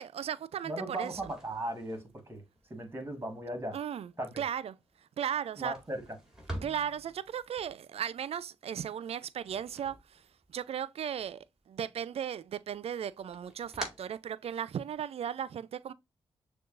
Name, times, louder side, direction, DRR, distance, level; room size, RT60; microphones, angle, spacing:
voice 1, 0.0-1.2 3.7-4.8 5.2-5.8 6.6-10.2 10.5-15.9, right 9 dB, 60° right, 0.4 m, -36 dB
voice 2, 0.6-2.4 2.7-3.8 4.2-4.4 5.6-6.0, right 1 dB, 20° right, 1.6 m, -37 dB
sound 1, 0.9-10.8 11.1-12.0 12.4-15.0, right 1 dB, 5° right, 1.9 m, -48 dB
6.3 x 2.3 x 2.4 m
supercardioid pair, 45°, 11 cm